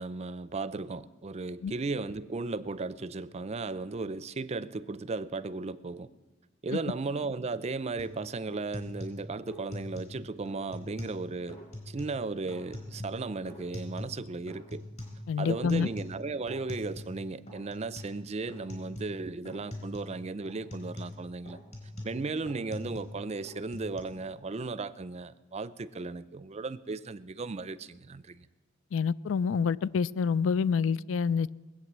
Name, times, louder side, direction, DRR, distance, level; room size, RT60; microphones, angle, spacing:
voice 1, 0.0-6.1 6.6-11.6 11.9-14.8 15.4-21.6 22.0-28.5, right 3 dB, 35° right, 16 dB, 0.5 m, -36 dB
sound 1, 8.0-8.2 8.5-10.2 10.4-11.2 11.5-12.2 12.5-14.2 14.5-17.2 17.5-18.2 18.5-19.2 19.4-20.1 20.4-23.2 23.4-24.0, left 1 dB, 35° left, 3.9 m, -42 dB
voice 2, 15.3-15.9 28.9-31.6, left 6 dB, 80° left, 20 dB, 0.4 m, -27 dB
20.0 x 8.5 x 7.4 m, 1.2 s
head